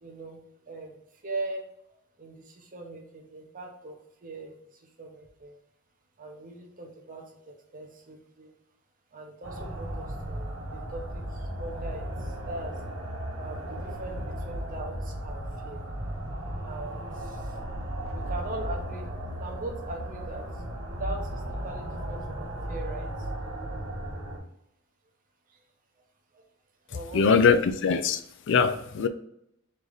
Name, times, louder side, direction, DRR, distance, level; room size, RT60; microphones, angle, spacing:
voice 1, 0.0-0.4 0.7-1.6 2.2-5.6 6.2-8.5 9.1-12.8 13.4-15.8 16.6-17.6 18.1-23.3 25.5-25.6 26.3-26.4 26.9-27.7 28.9-29.0, right 2 dB, 45° right, 0.8 m, -41 dB
sound 1, 9.4-24.4, right 1 dB, 80° right, 1.4 m, -35 dB
voice 2, 27.1-28.2 28.5-29.1, left 5 dB, 65° left, 0.4 m, -22 dB
3.8 x 3.3 x 3.9 m
head